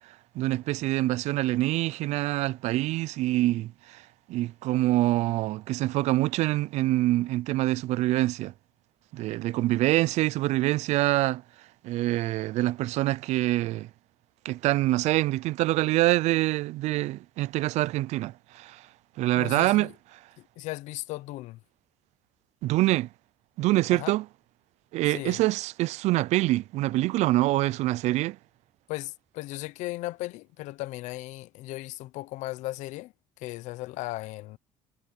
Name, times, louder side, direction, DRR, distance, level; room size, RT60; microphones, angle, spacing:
voice 1, 0.3-4.0 4.3-8.5 9.1-11.4 11.8-13.9 14.4-18.8 19.2-19.9 22.6-23.1 23.6-24.2 24.9-28.4, right 17 dB, 65° right, 0.5 m, -25 dB
voice 2, 19.3-19.9 20.4-21.6 23.9-24.1 25.1-25.4 28.9-34.6, left 18 dB, 75° left, 0.8 m, -37 dB
cardioid pair, 110°, 12 cm